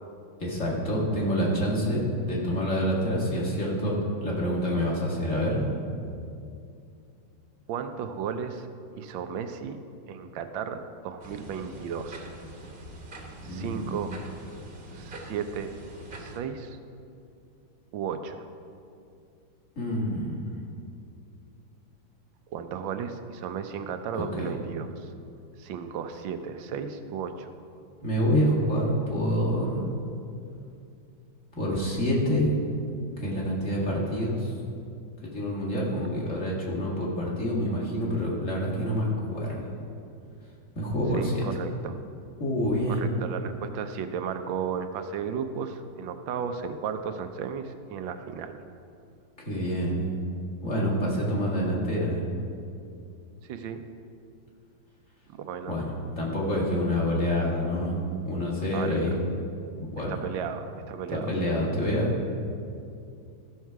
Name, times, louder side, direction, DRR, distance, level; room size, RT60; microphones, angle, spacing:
voice 1, 0.4-2.0 2.3-4.0 4.2-5.6 13.4-13.8 19.8-20.4 24.2-24.5 28.0-29.8 31.5-32.5 33.2-34.5 35.2-39.7 40.8-41.4 42.4-43.0 49.4-50.0 50.6-52.3 55.7-58.0 58.2-59.1 59.9-60.2 61.1-62.4, equal, 40° left, -5 dB, 2.4 m, -27 dB
voice 2, 7.7-8.7 9.0-9.8 10.1-12.3 13.4-14.1 14.9-15.7 16.1-16.8 17.9-18.5 22.5-25.1 25.6-27.5 41.1-42.0 42.9-48.5 53.4-53.8 55.3-55.8 58.7-59.0 60.1-61.3, right 7 dB, 90° right, 8 dB, 1.4 m, -34 dB
sound 1, 11.2-16.4, right 1 dB, 35° right, 1.1 m, -44 dB
14.5 x 6.6 x 4.6 m, 2.5 s
omnidirectional pair, 2.0 m